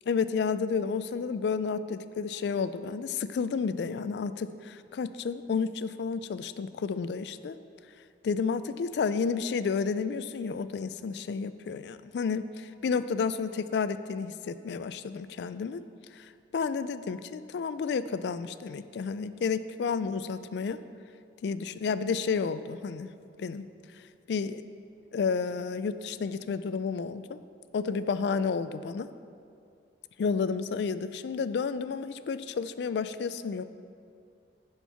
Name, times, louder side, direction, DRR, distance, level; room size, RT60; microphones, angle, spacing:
voice 1, 0.1-7.6 8.2-15.8 16.1-20.8 21.4-23.1 23.4-23.7 24.3-24.6 25.1-27.4 27.7-29.1 30.2-33.6, left 5 dB, 70° left, 13 dB, 0.3 m, -31 dB
10.0 x 4.5 x 5.6 m, 2.4 s
head